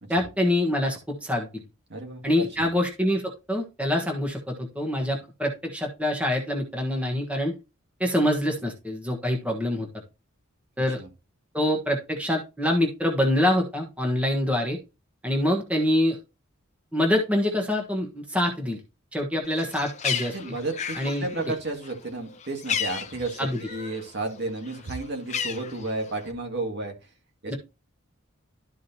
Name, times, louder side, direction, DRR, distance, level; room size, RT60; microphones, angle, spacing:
voice 1, 0.1-1.6 2.2-7.5 8.0-9.9 10.8-11.0 11.5-14.8 15.2-16.2 16.9-18.8 19.1-20.3 21.0-21.2 23.4-23.6 27.5-27.6, left 1 dB, 5° right, 2 dB, 1.3 m, -25 dB
voice 2, 1.9-2.7 10.8-11.1 20.3-26.9 27.4-27.6, right 2 dB, 55° right, 3 dB, 2.0 m, -33 dB
Bird, 19.4-24.1 24.4-26.3, left 7 dB, 35° left, 0.8 m, -33 dB
12.5 x 4.9 x 2.8 m, 0.27 s
head